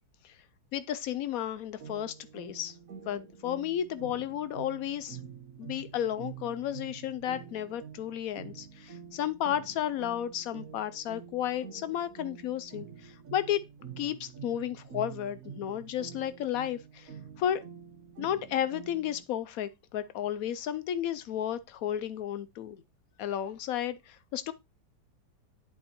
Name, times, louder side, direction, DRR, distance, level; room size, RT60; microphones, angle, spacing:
voice 1, 0.7-2.8 3.1-5.2 5.6-13.6 14.0-17.1 17.4-17.6 18.2-22.8 23.2-24.5, left 10 dB, 85° left, 0.7 m, -33 dB
sound 1, 1.8-19.2, right 7 dB, 50° right, 1.4 m, -47 dB
10.5 x 5.5 x 2.9 m
omnidirectional pair, 2.1 m